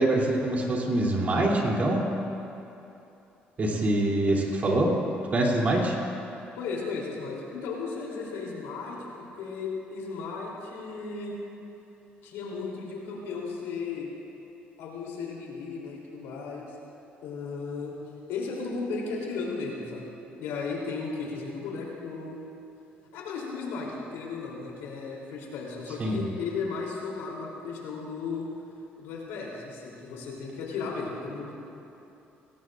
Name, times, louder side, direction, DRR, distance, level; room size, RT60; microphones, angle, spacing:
voice 1, 0.0-2.1 3.6-4.9 5.3-6.0 26.0-26.2, right 1 dB, 40° right, -2 dB, 3.2 m, -24 dB
voice 2, 6.6-11.4 12.2-14.1 14.8-16.7 17.2-18.0 18.3-20.1 20.4-22.4 23.1-28.5 29.0-31.6, left 4 dB, 90° left, -3 dB, 3.4 m, -35 dB
19.5 x 17.5 x 2.6 m, 2.9 s
cardioid pair, 85°, 4 cm